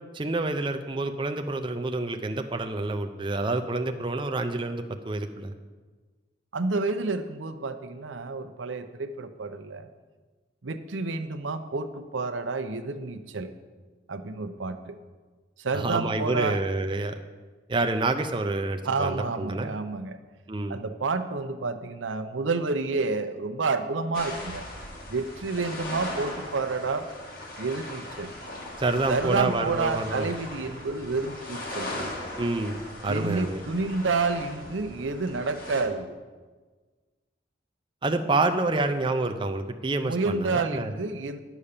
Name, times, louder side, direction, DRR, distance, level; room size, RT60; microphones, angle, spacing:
voice 1, 0.1-5.5 15.7-17.2 17.7-19.7 20.5-20.8 28.8-30.3 31.9-33.6 38.0-40.9, right 2 dB, 25° right, 6 dB, 0.5 m, -28 dB
voice 2, 6.5-9.9 10.6-13.5 14.1-15.0 15.6-16.6 18.8-20.2 20.7-24.6 25.1-27.1 27.6-28.3 29.1-31.9 33.0-36.2 40.0-41.4, right 3 dB, 85° right, 8 dB, 0.7 m, -29 dB
sound 1, 24.1-35.8, left 1 dB, 50° left, 2.0 m, -39 dB
10.0 x 7.1 x 6.7 m, 1.4 s
head